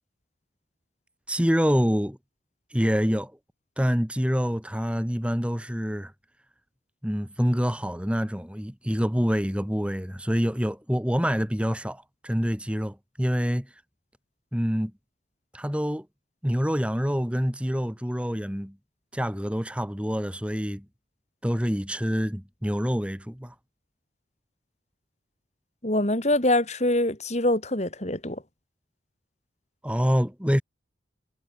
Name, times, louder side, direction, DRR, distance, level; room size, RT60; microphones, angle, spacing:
voice 1, 1.3-2.2 2.7-3.3 3.8-6.1 7.0-13.7 14.5-14.9 15.5-16.1 16.4-18.7 19.1-20.8 21.4-23.5 29.8-30.6, equal, 5° right, 3.4 m, -26 dB
voice 2, 25.8-28.4, left 1 dB, 35° left, 3.3 m, -24 dB
head